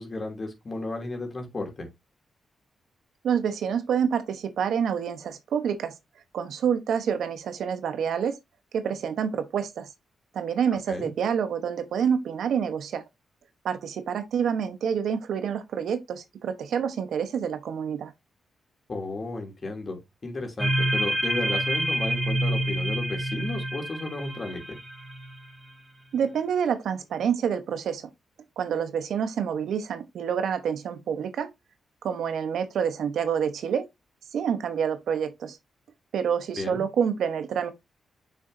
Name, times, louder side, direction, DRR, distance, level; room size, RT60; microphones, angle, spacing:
voice 1, 0.0-1.9 10.9-11.1 18.9-24.8 36.6-36.9, left 2 dB, 40° left, 2.8 m, -34 dB
voice 2, 3.2-5.9 6.3-8.4 8.7-9.9 10.3-13.0 13.6-18.1 26.1-28.1 28.6-31.5 32.0-33.8 34.3-35.6 36.1-37.7, right 7 dB, 80° right, 1.0 m, -27 dB
sound 1, 20.6-25.4, right 1 dB, 20° right, 3.3 m, -27 dB
6.8 x 6.2 x 2.7 m
cardioid pair, 80°, 0 cm